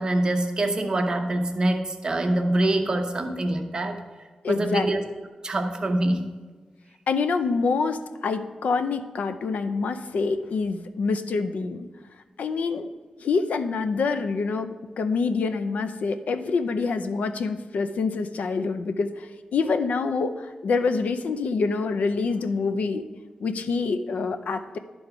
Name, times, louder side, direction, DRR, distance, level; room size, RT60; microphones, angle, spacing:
voice 1, 0.0-4.0 4.5-5.0 5.4-6.3, right 1 dB, 35° right, 4 dB, 0.7 m, -25 dB
voice 2, 4.4-4.9 7.1-11.9 12.4-12.9 13.2-14.7 15.0-23.0 23.4-24.8, left 4 dB, 85° left, 9 dB, 0.5 m, -26 dB
11.5 x 3.9 x 4.7 m, 1.3 s
wide cardioid pair, 145°, 2 cm